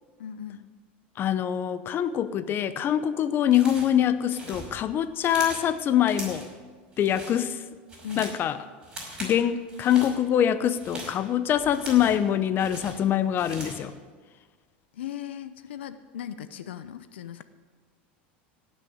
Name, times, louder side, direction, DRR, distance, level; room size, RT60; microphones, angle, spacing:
voice 1, 0.2-0.7 8.0-8.3 14.9-17.4, left 10 dB, 85° left, 12 dB, 0.7 m, -38 dB
voice 2, 1.2-6.5 7.0-7.6 8.2-8.6 9.2-13.9, left 10 dB, 35° left, 13 dB, 0.7 m, -24 dB
sound 1, 3.5-4.0 4.3-5.7 6.1-6.5 6.9-7.4 7.7-8.4 8.8-9.4 9.7-10.1 10.6-12.3 12.6-13.9, right 1 dB, 15° right, 5.4 m, -40 dB
17.0 x 6.5 x 7.9 m, 1.5 s
supercardioid pair, 110°, 6 cm